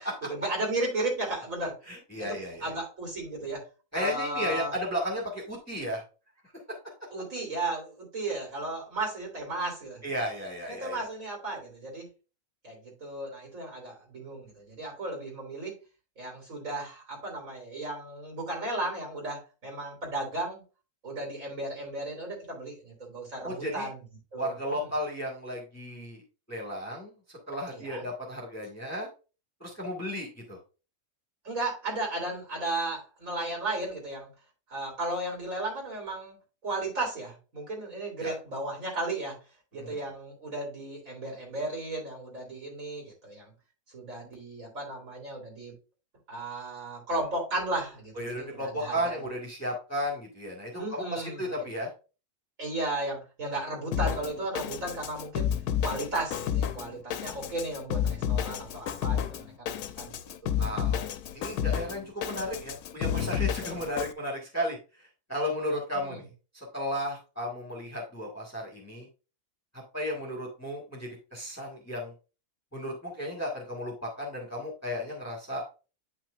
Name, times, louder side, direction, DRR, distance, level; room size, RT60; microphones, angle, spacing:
voice 1, 0.3-1.8 2.2-3.6 3.9-4.7 7.1-10.0 10.7-12.1 12.6-15.8 16.2-20.6 21.0-24.0 24.3-24.5 27.7-28.1 31.4-34.3 34.7-36.4 36.6-39.4 39.7-43.5 43.9-45.7 46.3-49.2 50.8-51.5 52.6-55.5 55.8-60.7 63.6-63.8 65.7-66.2, right 2 dB, 60° right, 0 dB, 3.7 m, -35 dB
voice 2, 1.9-2.7 3.9-6.0 10.0-11.1 23.4-23.9 24.4-26.2 26.5-27.1 27.5-29.1 29.6-30.6 38.2-38.3 39.7-40.0 48.1-51.9 60.6-61.1 61.3-64.8 65.3-66.2 66.5-69.1 69.9-72.1 72.7-75.6, equal, 10° left, -2 dB, 1.7 m, -34 dB
Drum kit, 53.9-64.1, left 9 dB, 80° left, 1.1 m, -31 dB
8.9 x 6.0 x 2.5 m, 0.33 s
omnidirectional pair, 1.6 m